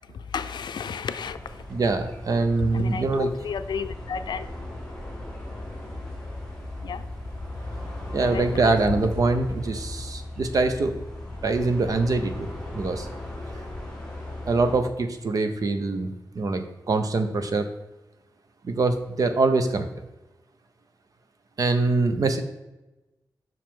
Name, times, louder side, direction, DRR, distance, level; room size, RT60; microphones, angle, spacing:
voice 1, 0.1-1.7 2.7-4.5 6.8-7.1 8.1-8.8, left 6 dB, 85° left, 11 dB, 0.5 m, -33 dB
sound 1, 1.2-14.8, left 1 dB, 5° left, 1.8 m, -37 dB
voice 2, 1.7-3.3 8.1-10.9 11.4-13.1 14.5-17.7 18.6-20.1 21.6-22.4, right 3 dB, 50° right, 7 dB, 0.8 m, -24 dB
7.5 x 5.8 x 3.7 m, 1.0 s
wide cardioid pair, 170°, 7 cm